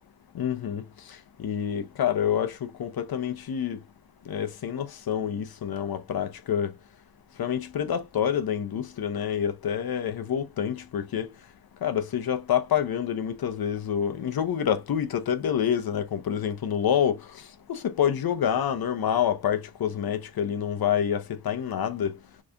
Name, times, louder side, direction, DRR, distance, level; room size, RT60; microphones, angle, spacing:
voice 1, 0.3-0.8 1.4-3.8 4.3-6.7 7.4-11.3 11.8-17.2 17.7-22.2, left 9 dB, 60° left, 0.8 m, -27 dB
3.5 x 3.2 x 2.6 m
wide cardioid pair, 140°, 41 cm